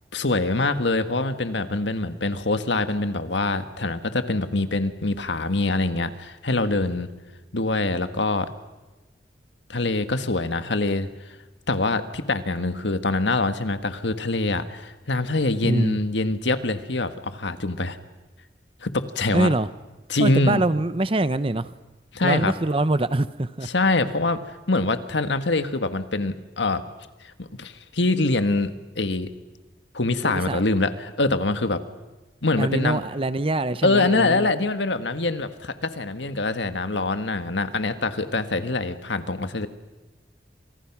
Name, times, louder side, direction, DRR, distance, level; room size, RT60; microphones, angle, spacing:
voice 1, 0.1-7.1 7.5-8.5 9.7-11.4 11.7-18.0 18.8-19.5 20.1-20.6 22.1-22.5 23.6-24.4 24.7-26.8 27.2-29.3 29.9-31.8 32.4-33.0 33.8-39.7, left 2 dB, 80° left, 9 dB, 1.7 m, -24 dB
voice 2, 15.6-16.0 19.3-19.7 20.2-21.7 22.2-23.7 30.2-30.6 32.6-34.5, right 2 dB, 30° right, 14 dB, 0.8 m, -24 dB
29.0 x 27.5 x 6.1 m, 1.2 s
head